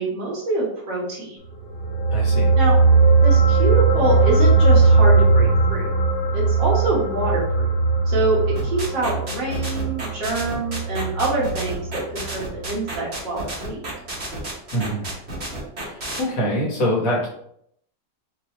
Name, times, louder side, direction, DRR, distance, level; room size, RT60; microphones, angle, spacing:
voice 1, 0.0-1.4 2.6-2.8 3.2-5.9 6.3-7.7 8.1-13.8, right 2 dB, 75° right, -4 dB, 2.1 m, -25 dB
sound 1, 1.6-12.3 12.6-12.8, right 3 dB, 80° left, 1.5 m, -18 dB
voice 2, 2.1-2.5 14.7-15.1 15.8-17.3, equal, 50° left, -3 dB, 1.5 m, -24 dB
sound 2, 8.5-16.2, right 2 dB, 40° right, 1.4 m, -31 dB
4.7 x 3.0 x 3.0 m, 0.70 s
omnidirectional pair, 1.9 m